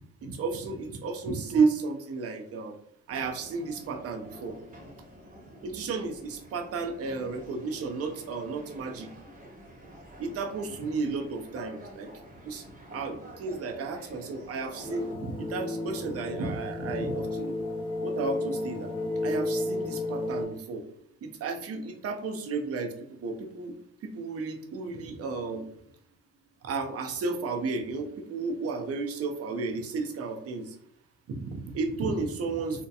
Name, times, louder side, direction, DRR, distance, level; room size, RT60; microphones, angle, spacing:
voice 1, 0.2-2.8 3.1-4.6 5.6-9.1 10.2-12.1 12.4-17.6 18.0-18.9 19.2-20.9 21.2-23.7 24.0-25.7 26.6-30.8 31.3-32.9, right 4 dB, 50° right, 4 dB, 0.5 m, -32 dB
sound 1, 3.1-15.2, right 1 dB, 25° right, 0.9 m, -48 dB
sound 2, 14.8-20.5, left 2 dB, 15° left, 0.6 m, -32 dB
2.8 x 2.1 x 2.3 m, 0.70 s
cardioid pair, 90°, 30 cm